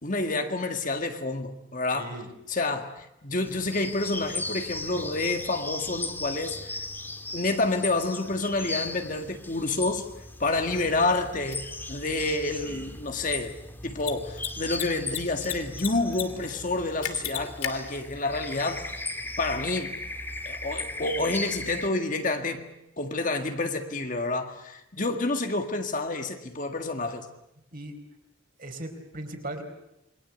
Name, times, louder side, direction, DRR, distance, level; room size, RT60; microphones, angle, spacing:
voice 1, 0.0-2.1 2.5-6.8 7.3-10.1 10.4-13.6 13.8-18.9 19.4-20.0 20.5-27.3, left 2 dB, 40° left, 1.9 m, -29 dB
voice 2, 1.9-2.3 12.6-12.9 27.7-28.0 28.6-29.6, right 1 dB, 40° right, 4.3 m, -38 dB
sound 1, 3.4-21.9, left 2 dB, 10° left, 2.0 m, -37 dB
Mechanisms, 11.5-11.6 13.9-14.1 14.4-14.5 14.7-15.5 15.8-16.2 16.5-16.6 17.0-17.7, left 12 dB, 85° left, 2.8 m, -31 dB
28.0 x 23.0 x 8.2 m
head